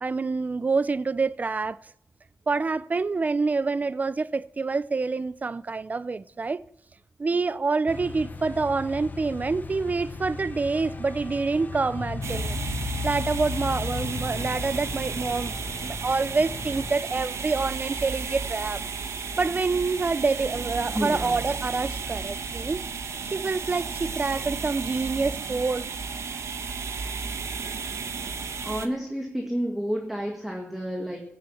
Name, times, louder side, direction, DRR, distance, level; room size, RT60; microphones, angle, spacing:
voice 1, 0.0-1.8 2.5-6.6 7.2-12.6 13.0-18.8 19.4-22.8 23.3-25.8, right 4 dB, 30° right, 0.6 m, -27 dB
sound 1, 7.9-16.9, left 4 dB, 35° left, 1.1 m, -35 dB
sound 2, 12.2-28.9, right 5 dB, 70° right, 1.5 m, -33 dB
voice 2, 20.9-21.4 28.6-31.2, equal, 5° right, 1.9 m, -30 dB
16.0 x 7.6 x 8.5 m
wide cardioid pair, 135°, 5 cm